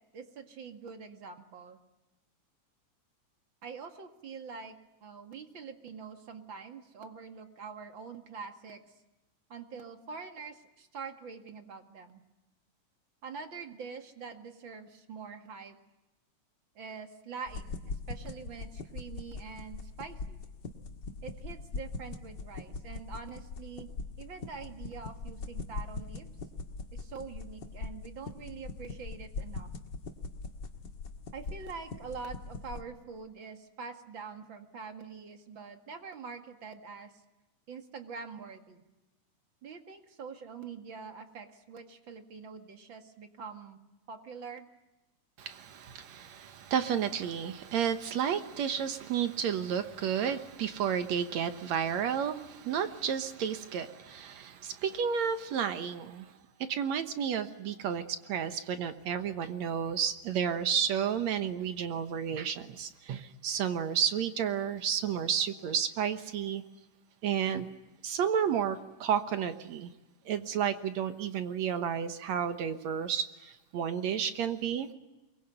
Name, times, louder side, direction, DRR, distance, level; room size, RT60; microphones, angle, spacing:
voice 1, 0.1-1.8 3.6-8.8 9.5-12.2 13.2-15.8 16.8-20.4 21.2-23.9 24.2-26.3 26.9-29.7 31.3-37.2 37.7-38.8 39.6-43.8 44.1-44.7, right 5 dB, 40° right, 6 dB, 2.4 m, -45 dB
sound 1, 17.5-32.8, left 3 dB, 40° left, 1.9 m, -41 dB
voice 2, 45.4-56.3 56.6-66.6 67.2-67.7 68.0-69.9 70.3-74.9, right 8 dB, 65° right, 9 dB, 2.3 m, -31 dB
24.0 x 23.0 x 9.2 m, 1.0 s
omnidirectional pair, 3.7 m